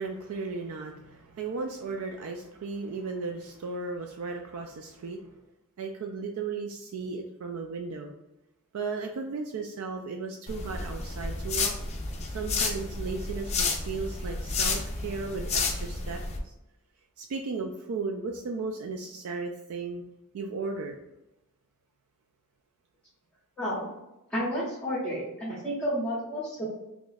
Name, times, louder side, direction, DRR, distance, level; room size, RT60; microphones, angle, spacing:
voice 1, 0.0-5.4 5.8-8.1 8.7-11.7 12.2-16.5 17.2-20.0 20.3-21.0, right 4 dB, 75° right, 3 dB, 0.3 m, -35 dB
sound 1, 10.5-16.4, left 3 dB, 30° left, 0.4 m, -31 dB
voice 2, 23.6-23.9 24.3-26.6, equal, 5° left, -9 dB, 0.9 m, -31 dB
3.0 x 2.3 x 4.0 m, 0.92 s
head